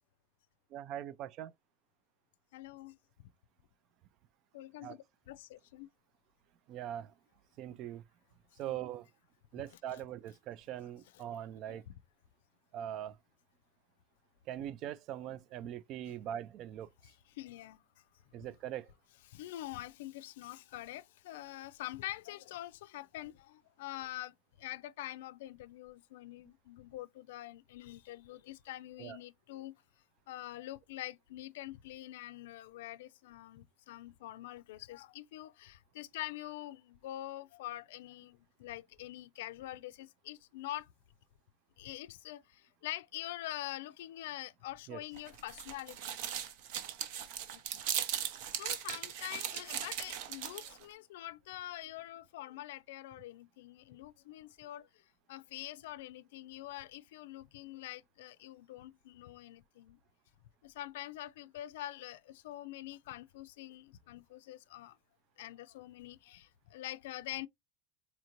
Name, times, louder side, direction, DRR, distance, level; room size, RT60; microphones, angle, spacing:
voice 1, 0.7-1.5 4.8-5.0 6.7-7.1 7.6-8.0 8.6-9.1 9.5-11.8 12.7-13.2 14.5-16.9 18.3-18.9 29.0-29.2 44.9-45.0, right 11 dB, 50° right, 0.4 m, -41 dB
voice 2, 2.5-3.0 4.5-5.9 8.7-8.8 9.7-10.0 11.1-11.2 11.7-11.9 17.0-17.8 18.4-18.5 19.3-29.7 30.3-40.9 41.8-46.2 47.5-47.8 48.5-60.0 60.6-65.0 65.4-67.5, left 15 dB, 85° left, 0.4 m, -45 dB
sound 1, 45.1-50.8, right 10 dB, 70° right, 0.8 m, -38 dB
4.3 x 2.5 x 2.9 m
supercardioid pair, 130°, 0 cm